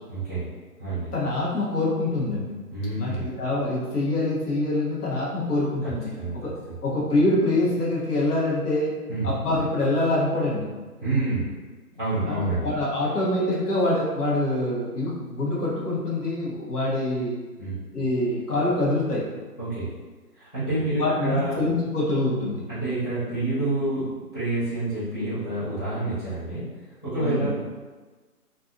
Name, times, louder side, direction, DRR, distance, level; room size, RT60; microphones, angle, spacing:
voice 1, 0.1-0.5 0.8-1.1 2.7-3.3 6.1-6.4 6.7-6.8 9.1-9.3 11.0-11.5 12.0-12.7 17.6-17.8 19.6-19.9 20.3-21.6 22.7-26.6 27.0-27.5, right 2 dB, 30° left, -17 dB, 1.0 m, -28 dB
voice 2, 1.1-2.6 3.0-6.5 6.8-8.9 9.2-10.7 12.2-17.4 17.9-19.2 21.0-22.6 27.2-27.5, left 1 dB, 70° left, -5 dB, 1.1 m, -25 dB
2.6 x 2.6 x 2.3 m, 1.3 s
hypercardioid pair, 175°, 47 cm